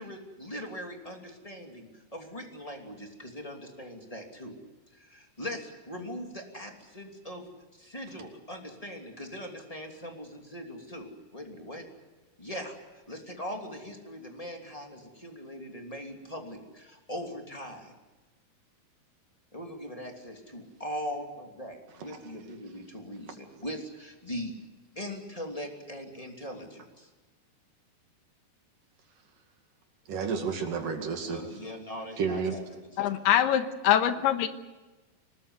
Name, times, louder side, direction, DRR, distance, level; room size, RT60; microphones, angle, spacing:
voice 1, 0.0-4.6 4.9-7.4 7.7-11.8 12.4-12.8 13.1-17.9 19.5-24.5 24.9-27.1 31.2-33.1, equal, 10° left, 2 dB, 2.4 m, -40 dB
voice 2, 30.1-31.6 32.2-32.6, right 5 dB, 60° right, 4 dB, 3.7 m, -31 dB
voice 3, 33.0-34.5, left 10 dB, 85° left, 9 dB, 3.2 m, -24 dB
25.5 x 20.0 x 8.2 m, 1.2 s
omnidirectional pair, 4.6 m